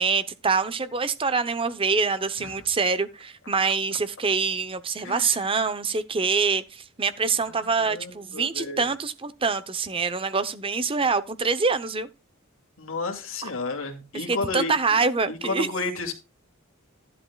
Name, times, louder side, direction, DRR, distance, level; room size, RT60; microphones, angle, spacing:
voice 1, 0.0-12.1 13.4-13.5 14.1-15.7, right 4 dB, 25° right, 0.7 m, -25 dB
voice 2, 5.0-5.3 7.4-7.5 7.8-8.9 12.8-15.0 15.3-16.1, left 3 dB, 75° left, 2.4 m, -32 dB
12.5 x 11.0 x 2.3 m
head